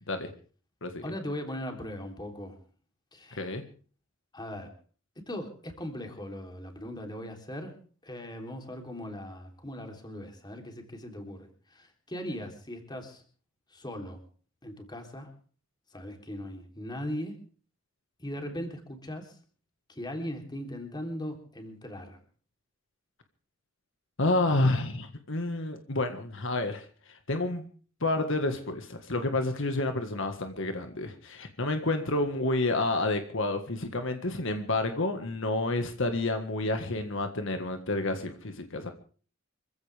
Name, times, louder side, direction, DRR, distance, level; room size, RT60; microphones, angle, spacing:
voice 1, 1.0-2.6 3.1-3.6 4.3-4.7 5.2-7.8 8.0-13.2 13.7-14.2 14.6-15.3 15.9-17.4 18.2-19.4 19.9-22.2, equal, 20° left, 4 dB, 3.5 m, -39 dB
voice 2, 3.3-3.6 24.2-27.7 28.0-38.9, left 2 dB, 65° left, 6 dB, 1.7 m, -29 dB
26.0 x 15.5 x 3.5 m, 0.41 s
head